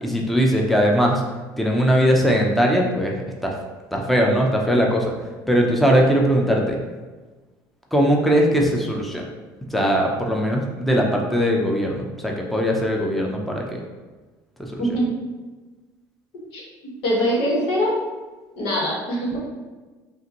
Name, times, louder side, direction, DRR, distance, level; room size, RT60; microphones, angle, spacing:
voice 1, 0.0-1.2 1.6-3.2 3.4-3.5 3.9-5.0 5.5-6.8 7.9-9.3 9.7-13.6 14.7-14.8, equal, ahead, 0 dB, 0.6 m, -20 dB
voice 2, 17.0-17.9 18.6-19.4, equal, 75° left, -4 dB, 1.5 m, -22 dB
5.5 x 2.6 x 2.9 m, 1.3 s
supercardioid pair, 90°, 9 cm